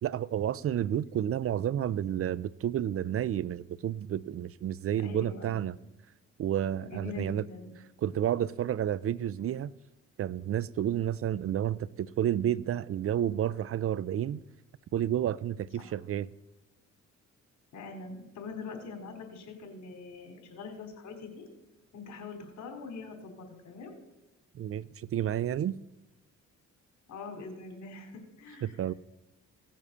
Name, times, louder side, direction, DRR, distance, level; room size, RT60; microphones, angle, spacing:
voice 1, 0.0-5.8 6.4-7.4 8.0-9.7 10.2-14.4 14.9-16.3 24.5-25.7 28.6-28.9, right 10 dB, 50° right, 0.5 m, -30 dB
voice 2, 5.0-5.5 6.8-7.7 15.8-16.0 17.7-21.4 21.9-23.9 27.1-28.8, left 4 dB, 70° left, 3.8 m, -43 dB
17.0 x 7.4 x 6.8 m
cardioid pair, 90°, 30 cm